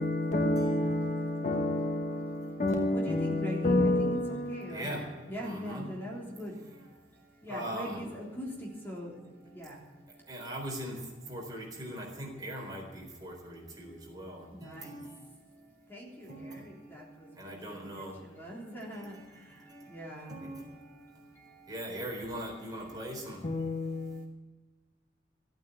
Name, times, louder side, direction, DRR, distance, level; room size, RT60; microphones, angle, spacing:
voice 1, 0.0-4.8 23.4-24.2, left 1 dB, 40° left, 1.1 m, -29 dB
voice 2, 0.6-1.8 2.2-2.4 2.7-3.5 4.7-5.1 5.4-5.9 7.5-8.0 10.3-18.2 18.9-20.0 20.3-21.4 21.7-23.5 24.0-24.1, right 1 dB, 20° right, 4.2 m, -42 dB
voice 3, 2.9-6.5 7.4-9.1 9.5-9.8 14.5-15.0 15.9-17.0 17.9-18.0 18.3-19.2 19.9-20.4, equal, 10° left, 3.5 m, -41 dB
15.0 x 9.0 x 9.0 m
head